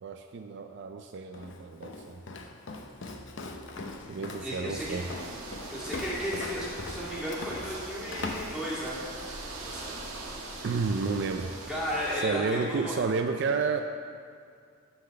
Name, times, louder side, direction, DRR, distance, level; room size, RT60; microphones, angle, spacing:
voice 1, 0.0-2.2 4.1-5.1 10.6-11.5 12.1-13.8, right 4 dB, 55° right, 6 dB, 0.3 m, -31 dB
Walk footsteps, 1.3-9.1, left 2 dB, 55° left, 0.7 m, -40 dB
voice 2, 4.4-5.0 5.7-9.0 9.4-9.9 11.7-12.4 12.7-13.0, equal, 5° right, -8 dB, 2.1 m, -34 dB
sound 1, 4.8-12.2, right 2 dB, 85° right, 1.6 m, -41 dB
9.9 x 4.0 x 6.5 m, 2.2 s
head